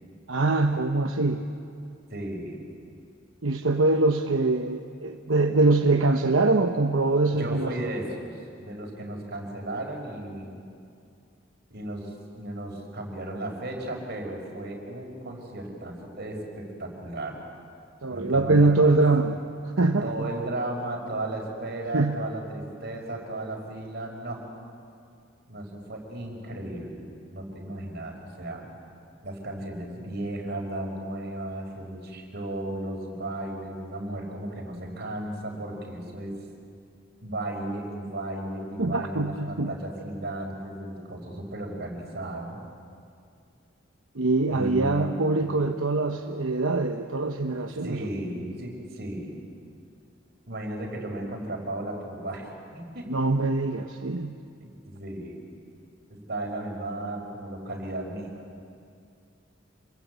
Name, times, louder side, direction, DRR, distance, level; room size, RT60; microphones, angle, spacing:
voice 1, 0.3-1.4 3.4-7.9 18.0-19.4 19.8-20.3 21.9-22.2 38.8-39.7 44.1-48.1 53.1-54.4, right 2 dB, 80° right, 4 dB, 1.0 m, -23 dB
voice 2, 2.1-2.7 7.3-10.6 11.7-17.4 18.1-19.0 20.0-24.4 25.5-28.7 29.2-36.3 37.2-42.6 44.5-45.1 47.8-49.4 50.5-53.1 54.1-54.3 54.6-55.4 56.1-58.4, right 1 dB, 55° right, 1 dB, 5.1 m, -35 dB
27.0 x 21.5 x 8.3 m, 2.4 s
head